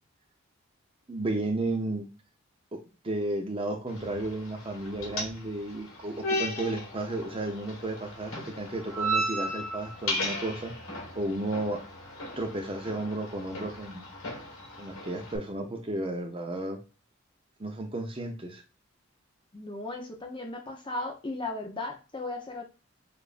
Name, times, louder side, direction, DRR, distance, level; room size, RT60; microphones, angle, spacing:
voice 1, 1.1-2.1 2.7-10.7 11.1-11.8 12.4-14.1 14.8-16.8 17.6-18.6, right 2 dB, 25° right, 4 dB, 0.7 m, -33 dB
sound 1, 3.9-15.4, equal, 80° left, 1.6 m, -36 dB
voice 2, 19.5-22.6, left 2 dB, 25° left, 2 dB, 0.7 m, -36 dB
6.9 x 2.6 x 2.5 m, 0.33 s
head